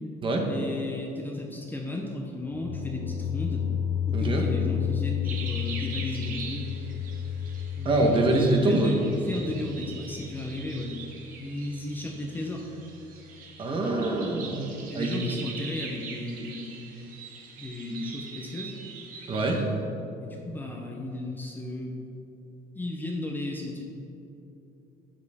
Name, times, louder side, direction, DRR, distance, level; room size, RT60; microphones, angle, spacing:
voice 1, 0.5-3.7 4.1-6.9 7.8-8.3 8.6-11.0 11.4-12.7 14.9-17.1 17.6-18.8 20.2-22.0 22.7-23.8, left 1 dB, 10° left, -1 dB, 0.8 m, -35 dB
sound 1, 2.5-11.4, left 9 dB, 70° left, 0.5 m, -32 dB
voice 2, 4.1-4.5 7.8-9.0 13.6-14.7 14.9-15.2 19.3-19.6, right 2 dB, 30° right, 2 dB, 1.3 m, -24 dB
sound 2, 5.2-19.6, right 5 dB, 55° right, 1.7 m, -43 dB
11.5 x 9.0 x 3.6 m, 3.0 s
cardioid pair, 155°, 17 cm